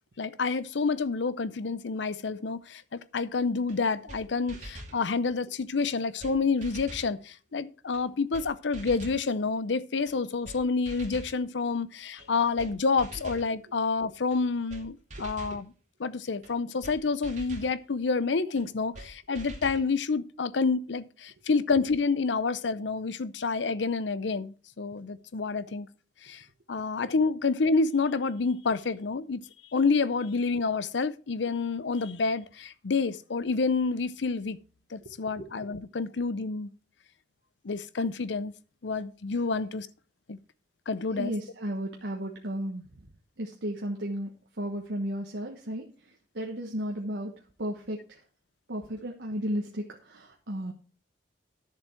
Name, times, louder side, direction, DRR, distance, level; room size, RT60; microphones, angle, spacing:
voice 1, 0.2-15.7 16.0-25.9 26.2-29.4 29.7-34.6 34.9-36.7 37.6-38.5 38.8-39.9 40.3-40.4 40.9-41.3, left 4 dB, 85° left, 0.6 m, -28 dB
sound 1, 3.7-3.8 4.1-4.2 4.5-5.0 5.8-5.9 6.2-6.3 6.6-7.1 7.9-8.0 8.3-8.5 8.7-9.2 10.1-10.2 10.4-10.6 10.9-11.3 12.2-12.3 12.6-12.7 13.0-13.5 14.3-14.4 14.7-14.8 15.1-15.6 16.4-16.5 16.8-17.0 17.2-17.7 18.6-18.7 18.9-19.1 19.3-19.8, right 1 dB, 40° right, 2.5 m, -43 dB
voice 2, 41.1-42.8 43.4-44.3 44.6-45.8 46.3-47.3 47.6-48.2 48.7-50.7, equal, 75° right, 1.2 m, -34 dB
11.0 x 7.0 x 4.5 m
head